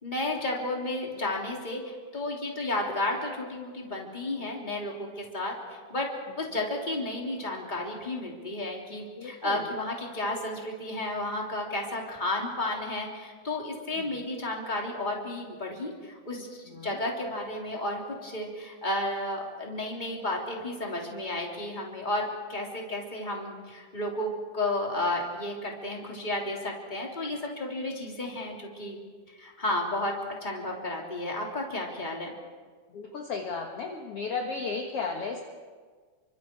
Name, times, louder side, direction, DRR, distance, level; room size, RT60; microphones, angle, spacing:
voice 1, 0.0-5.5 5.9-6.1 6.4-29.0 29.4-30.2 30.4-32.3, left 1 dB, 15° left, -1 dB, 3.4 m, -32 dB
voice 2, 9.2-9.6 16.7-16.9 32.9-35.4, left 4 dB, 55° left, 2 dB, 2.2 m, -34 dB
30.0 x 25.0 x 4.7 m, 1.5 s
omnidirectional pair, 3.7 m